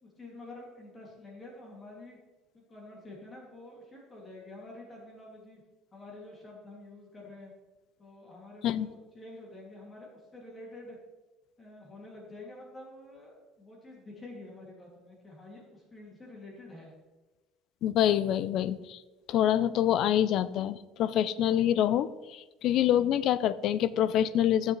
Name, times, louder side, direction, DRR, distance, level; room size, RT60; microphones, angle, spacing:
voice 1, 0.0-2.2 2.5-5.6 5.9-7.5 8.0-11.0 11.6-16.9, left 2 dB, 20° left, -2 dB, 2.4 m, -48 dB
voice 2, 17.8-19.0 19.3-24.7, left 11 dB, 55° left, 16 dB, 0.4 m, -26 dB
14.5 x 7.3 x 3.2 m, 1.1 s
cardioid pair, 130°, 0 cm